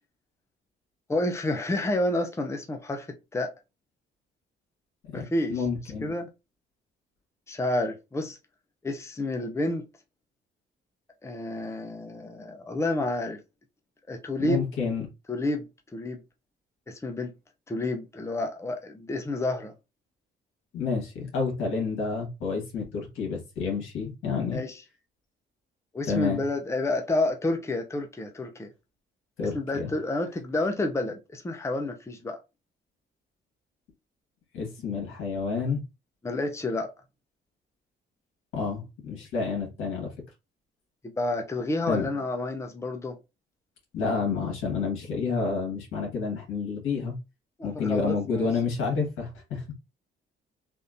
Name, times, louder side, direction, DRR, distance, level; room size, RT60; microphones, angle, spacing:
voice 1, 1.1-3.5 5.1-5.6 6.0-6.3 7.5-8.4 8.8-9.9 11.2-13.4 14.1-14.7 15.3-16.2 16.9-17.3 17.7-19.7 24.5-24.8 25.9-28.7 29.5-32.4 36.2-36.9 41.2-43.2 47.6-48.5, left 2 dB, 15° left, 0.6 m, -29 dB
voice 2, 5.5-6.1 14.4-15.0 20.7-24.6 26.1-26.4 29.4-29.9 34.5-35.8 38.5-40.1 41.9-42.1 43.9-47.2 47.6-49.6, left 5 dB, 85° left, 1.6 m, -29 dB
3.6 x 2.6 x 2.6 m
cardioid pair, 90°, 20 cm